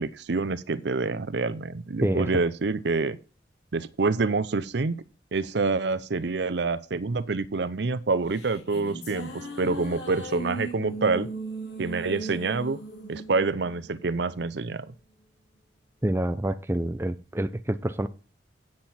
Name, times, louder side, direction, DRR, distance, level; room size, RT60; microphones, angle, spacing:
voice 1, 0.0-3.2 3.7-5.0 5.3-11.3 11.8-12.8 13.1-14.9, right 3 dB, 65° right, 0.6 m, -27 dB
sound 1, 8.1-14.6, right 2 dB, 75° left, 3.4 m, -38 dB
voice 2, 16.0-18.1, right 1 dB, 15° right, 0.5 m, -27 dB
8.8 x 7.8 x 4.2 m
head